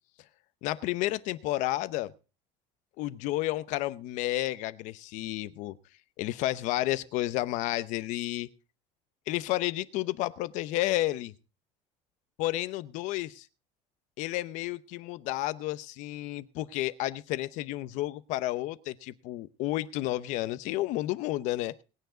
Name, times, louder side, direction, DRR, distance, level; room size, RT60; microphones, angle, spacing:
voice 1, 0.6-2.1 3.0-5.8 6.2-8.5 9.3-11.3 12.4-13.5 14.2-21.8, left 16 dB, 55° left, 16 dB, 0.8 m, -31 dB
19.5 x 9.3 x 3.8 m, 0.34 s
cardioid pair, 170°, 15 cm